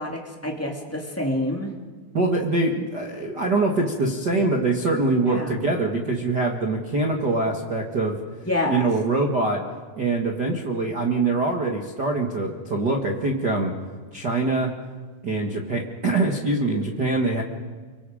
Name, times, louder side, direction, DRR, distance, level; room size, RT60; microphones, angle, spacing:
voice 1, 0.0-1.7 5.3-5.6 8.4-8.8, left 1 dB, 15° left, 0 dB, 0.5 m, -27 dB
voice 2, 2.1-8.2 8.7-9.6 10.0-13.7 14.1-14.7 15.2-17.4, right 2 dB, 75° right, 0 dB, 0.9 m, -24 dB
29.5 x 25.0 x 5.1 m, 1.4 s
omnidirectional pair, 5.1 m